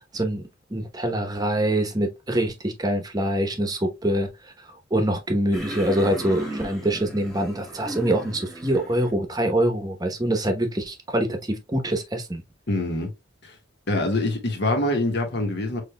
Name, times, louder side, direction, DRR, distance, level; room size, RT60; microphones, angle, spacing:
voice 1, 0.7-4.5 4.9-12.4, right 1 dB, 20° right, 0.9 m, -24 dB
sound 1, 5.5-9.1, right 1 dB, ahead, 1.5 m, -36 dB
voice 2, 12.7-13.1 13.4-13.5 13.9-15.8, left 2 dB, 60° left, 1.5 m, -24 dB
6.4 x 3.3 x 2.2 m
head